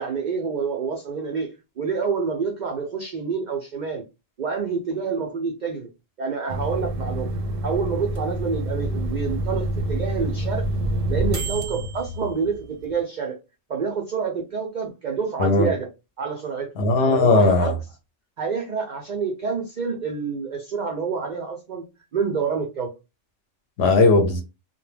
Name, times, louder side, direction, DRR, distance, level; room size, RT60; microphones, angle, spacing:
voice 1, 0.0-1.5 1.8-4.0 4.4-5.9 6.2-7.3 7.6-10.7 11.1-13.4 13.7-15.9 16.2-16.7 17.1-17.7 18.4-21.8 22.1-22.9, right 5 dB, 70° right, 0.4 m, -27 dB
sound 1, 6.5-12.9, right 1 dB, 90° right, 1.0 m, -27 dB
voice 2, 15.4-15.7 16.8-17.7 23.8-24.4, left 3 dB, 65° left, 0.7 m, -17 dB
2.2 x 2.1 x 3.1 m
omnidirectional pair, 1.3 m